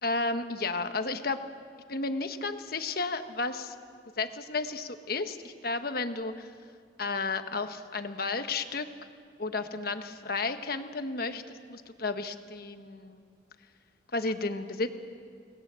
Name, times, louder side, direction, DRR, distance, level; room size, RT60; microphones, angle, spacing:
voice 1, 0.0-1.4 1.9-3.7 4.2-6.5 7.0-8.9 9.4-13.2 14.1-14.9, left 3 dB, 50° left, 8 dB, 1.3 m, -32 dB
29.0 x 19.5 x 7.7 m, 2.1 s
head